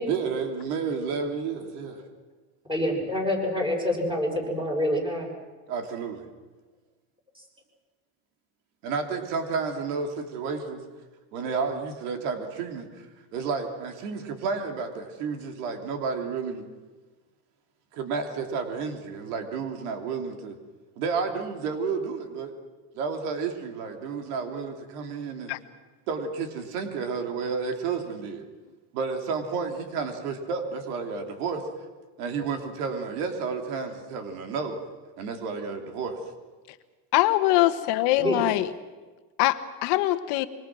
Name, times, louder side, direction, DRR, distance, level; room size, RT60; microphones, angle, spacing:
voice 1, 0.1-2.0 5.7-6.3 8.8-10.8 11.3-12.9 13.3-16.6 17.9-20.6 21.0-22.5 22.9-25.5 26.1-28.5 28.9-31.6 32.2-34.8 35.2-36.2, right 5 dB, 90° right, 5 dB, 3.4 m, -31 dB
voice 2, 2.7-5.3 7.3-7.4 38.2-38.4, left 1 dB, 10° right, 1 dB, 6.6 m, -27 dB
voice 3, 37.1-38.7 39.4-40.5, left 16 dB, 65° left, 11 dB, 1.3 m, -23 dB
25.5 x 24.5 x 6.2 m, 1.3 s
cardioid pair, 135°, 44 cm